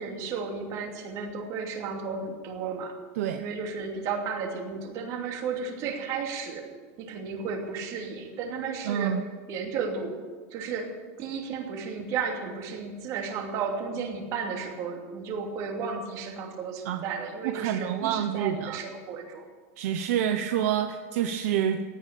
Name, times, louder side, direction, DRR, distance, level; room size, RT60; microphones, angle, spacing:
voice 1, 0.0-2.9 3.4-6.7 7.0-9.2 9.5-10.2 10.5-19.4, right 5 dB, 40° right, 2 dB, 2.8 m, -33 dB
voice 2, 8.8-9.2 16.8-17.1 17.4-18.8 19.8-21.8, right 9 dB, 65° right, 7 dB, 0.9 m, -27 dB
17.0 x 9.4 x 8.4 m, 1.5 s
supercardioid pair, 165°, 8 cm